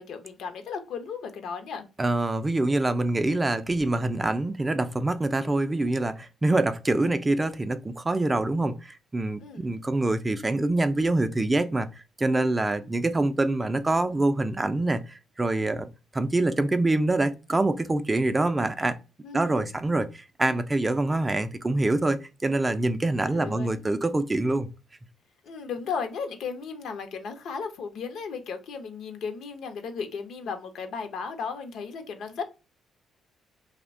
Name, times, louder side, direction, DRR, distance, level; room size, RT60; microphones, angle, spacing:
voice 1, 0.0-1.8 9.4-9.7 19.2-19.8 23.2-23.8 25.4-32.4, left 5 dB, 75° left, 0.5 m, -35 dB
voice 2, 2.0-11.9 12.2-15.9 16.1-19.0 19.3-20.1 20.4-24.7, right 2 dB, 20° right, 0.3 m, -25 dB
2.7 x 2.1 x 2.4 m
cardioid pair, 90°, 0 cm